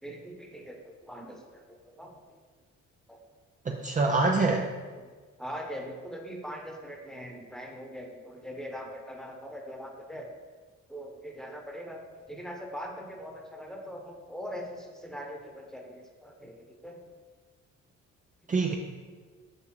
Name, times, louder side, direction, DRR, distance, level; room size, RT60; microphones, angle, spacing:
voice 1, 0.0-2.4 3.1-3.2 4.0-4.1 5.4-10.3 10.9-12.0 12.3-17.1, equal, ahead, 1 dB, 1.1 m, -42 dB
voice 2, 3.7-4.7 18.5-18.7, right 3 dB, 25° right, 1 dB, 0.5 m, -25 dB
6.0 x 5.2 x 4.7 m, 1.5 s
cardioid pair, 90°, 30 cm